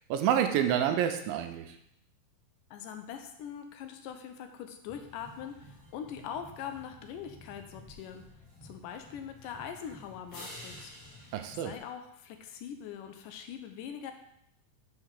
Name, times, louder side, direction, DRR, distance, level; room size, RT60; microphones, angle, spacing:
voice 1, 0.1-1.7 11.3-11.7, right 9 dB, 80° right, 7 dB, 2.3 m, -28 dB
voice 2, 2.7-8.2 8.6-10.9 11.6-14.1, left 8 dB, 75° left, 6 dB, 2.1 m, -42 dB
sound 1, 4.9-11.8, left 1 dB, 50° left, 2.6 m, -51 dB
5.9 x 4.6 x 6.5 m, 0.75 s
omnidirectional pair, 4.2 m